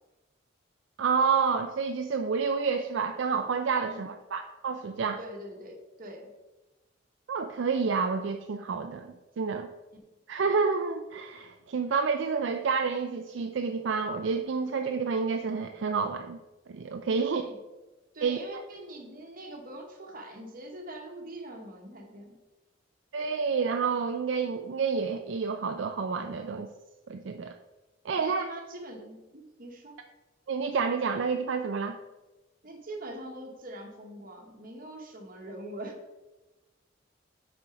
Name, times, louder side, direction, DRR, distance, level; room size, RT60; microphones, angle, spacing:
voice 1, 1.0-5.2 7.3-9.7 10.3-16.4 16.7-17.4 18.2-18.4 23.1-26.7 27.1-27.5 28.0-28.4 30.5-32.0, right 5 dB, 70° right, 5 dB, 0.4 m, -29 dB
voice 2, 5.2-6.3 17.2-17.6 18.1-22.4 28.1-30.0 32.6-36.0, right 1 dB, 45° right, 2 dB, 1.2 m, -43 dB
6.1 x 4.4 x 4.9 m, 1.1 s
head